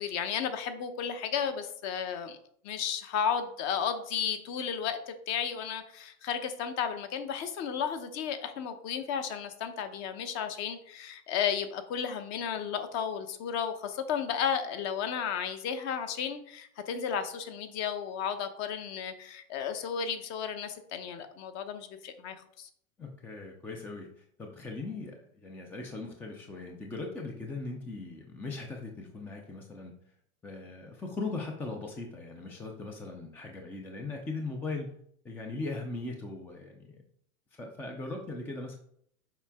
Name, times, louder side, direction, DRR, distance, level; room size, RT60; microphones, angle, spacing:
voice 1, 0.0-2.4 2.6-22.7, left 7 dB, 35° left, 9 dB, 0.9 m, -33 dB
voice 2, 23.0-29.9 30.4-34.9 35.2-37.0 37.6-38.8, left 3 dB, 5° left, 2 dB, 0.4 m, -39 dB
7.3 x 4.9 x 3.5 m, 0.65 s
hypercardioid pair, 120°, 43 cm